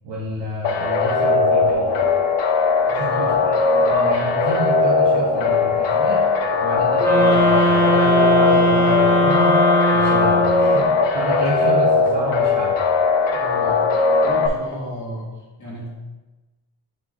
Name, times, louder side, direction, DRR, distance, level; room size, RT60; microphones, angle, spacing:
voice 1, 0.0-2.0 3.0-6.2 6.6-9.6 9.9-12.8, right 1 dB, 70° right, -6 dB, 1.3 m, -29 dB
sound 1, 0.6-14.5, left 4 dB, 75° left, 0.8 m, -19 dB
voice 2, 2.9-3.2 13.3-13.8 14.2-15.3 15.6-15.9, equal, 45° left, -4 dB, 1.8 m, -33 dB
sound 2, 7.0-10.9, equal, 5° left, 1.3 m, -18 dB
5.2 x 4.5 x 4.3 m, 1.1 s
wide cardioid pair, 155°, 43 cm